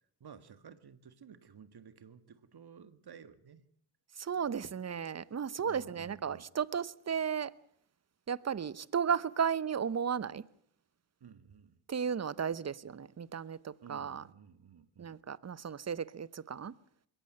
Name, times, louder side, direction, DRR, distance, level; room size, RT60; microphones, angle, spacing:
voice 1, 0.2-3.6 5.6-6.5 11.2-11.8 13.8-15.2, right 7 dB, 50° right, 1.9 m, -54 dB
voice 2, 4.2-7.5 8.3-10.4 11.9-14.2 15.0-16.8, right 7 dB, 30° right, 0.9 m, -34 dB
22.0 x 17.0 x 8.2 m
supercardioid pair, 60°, 49 cm